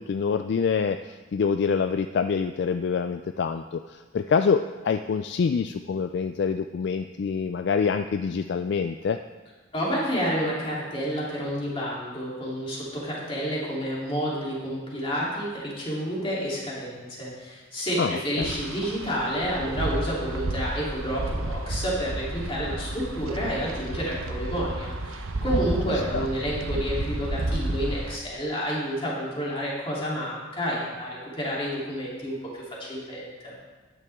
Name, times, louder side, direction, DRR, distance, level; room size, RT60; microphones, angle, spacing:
voice 1, 0.0-9.2 18.0-18.5 26.1-26.3, left 6 dB, 55° left, 8 dB, 0.3 m, -26 dB
voice 2, 9.7-33.5, equal, 25° left, -6 dB, 3.1 m, -30 dB
Wind, 18.4-28.2, right 2 dB, 80° right, 0.8 m, -31 dB
12.0 x 9.9 x 3.6 m, 1.3 s
head